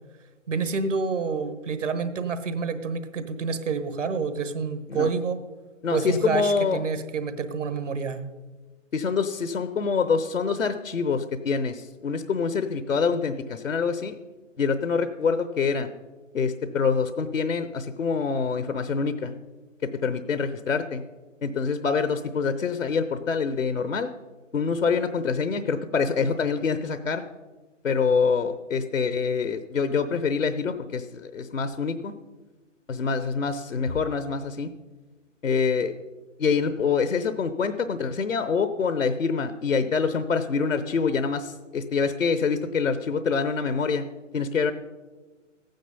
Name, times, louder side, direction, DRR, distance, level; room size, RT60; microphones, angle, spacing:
voice 1, 0.5-5.4 5.9-8.2, right 5 dB, 70° right, 10 dB, 1.3 m, -28 dB
voice 2, 5.8-6.8 8.9-14.2 14.6-15.9 16.3-19.3 20.0-21.0 21.4-24.1 24.5-27.2 27.8-32.1 32.9-34.7 35.4-35.9 36.4-44.0 44.3-44.7, left 5 dB, 85° left, 11 dB, 0.8 m, -25 dB
15.0 x 9.2 x 5.4 m, 1.3 s
figure-of-eight pair, 130°, 38 cm